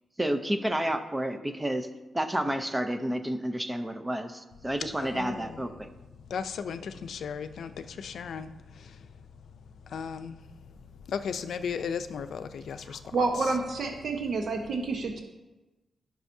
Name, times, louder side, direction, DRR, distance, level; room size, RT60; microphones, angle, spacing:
voice 1, 0.2-1.9 2.1-5.9, right 1 dB, 10° right, 0.6 m, -30 dB
voice 2, 5.0-5.6 6.3-9.1 9.9-10.4 11.1-13.0, left 6 dB, 75° left, 0.5 m, -36 dB
voice 3, 13.1-15.2, right 3 dB, 60° right, 1.1 m, -29 dB
15.5 x 6.1 x 2.7 m
wide cardioid pair, 130°, 0 cm